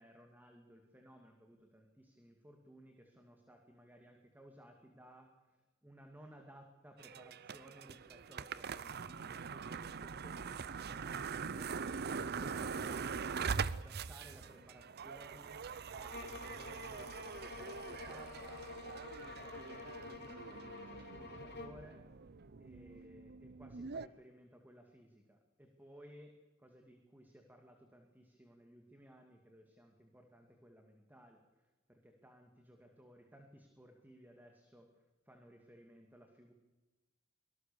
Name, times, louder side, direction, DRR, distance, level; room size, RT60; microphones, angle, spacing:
voice 1, 0.0-11.9 12.2-15.6 15.9-18.7 19.2-22.0 22.6-36.5, equal, 10° right, 3 dB, 2.3 m, -59 dB
sound 1, 7.0-24.1, right 5 dB, 50° right, 0.7 m, -43 dB
sound 2, 16.1-21.9, left 3 dB, 55° left, 3.1 m, -49 dB
25.0 x 19.0 x 7.0 m, 1.1 s
head